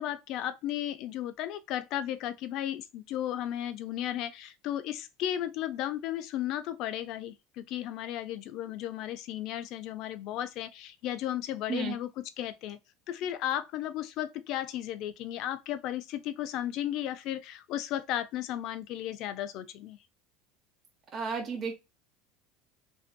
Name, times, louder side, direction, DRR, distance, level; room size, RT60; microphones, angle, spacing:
voice 1, 0.0-12.1 12.4-12.8 13.1-20.0, left 12 dB, 60° left, 0.3 m, -34 dB
voice 2, 21.1-21.7, right 5 dB, 35° right, 0.7 m, -32 dB
2.6 x 2.1 x 2.5 m
supercardioid pair, 105°, 0 cm